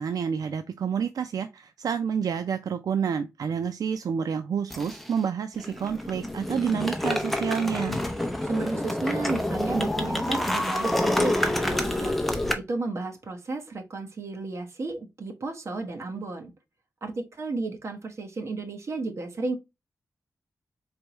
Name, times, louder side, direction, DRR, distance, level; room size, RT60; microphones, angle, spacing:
voice 1, 0.0-8.0, right 7 dB, 75° right, 0.4 m, -29 dB
sound 1, 4.7-5.2 5.6-12.5, left 1 dB, 5° left, 0.8 m, -28 dB
voice 2, 8.4-12.2 12.5-16.5 17.0-19.6, right 3 dB, 50° right, 1.1 m, -33 dB
4.3 x 3.4 x 2.9 m
wide cardioid pair, 135°, 6 cm